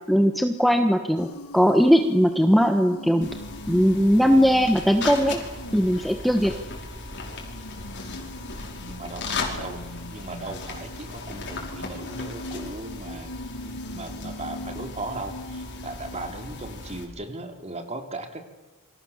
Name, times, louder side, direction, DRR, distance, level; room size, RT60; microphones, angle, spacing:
voice 1, 0.1-1.3 1.5-3.3 3.7-5.4 5.7-6.5, equal, ahead, 6 dB, 1.2 m, -19 dB
sound 1, 1.1-6.8 7.4-17.0, left 1 dB, 80° left, 1.5 m, -41 dB
sound 2, 3.2-17.0, left 3 dB, 55° left, 5.5 m, -37 dB
voice 2, 8.9-9.8 10.1-13.3 13.6-18.4, right 2 dB, 30° right, 5 dB, 3.3 m, -37 dB
28.5 x 25.5 x 7.2 m, 1.2 s
head